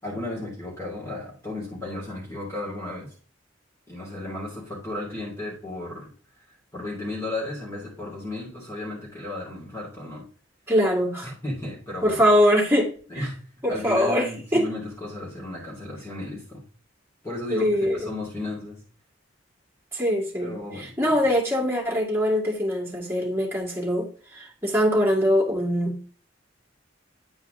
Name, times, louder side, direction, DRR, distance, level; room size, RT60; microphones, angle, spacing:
voice 1, 0.0-3.1 3.9-6.1 6.4-6.5 6.7-10.2 11.2-12.2 13.1-13.4 13.7-16.6 17.2-18.8 20.4-20.9, left 2 dB, 15° left, -7 dB, 3.0 m, -34 dB
voice 2, 10.7-11.3 12.0-12.9 13.6-14.2 14.5-14.7 17.5-18.1 19.9-24.1 24.3-26.0, equal, 15° right, -2 dB, 2.3 m, -22 dB
9.6 x 4.7 x 3.9 m, 0.42 s
head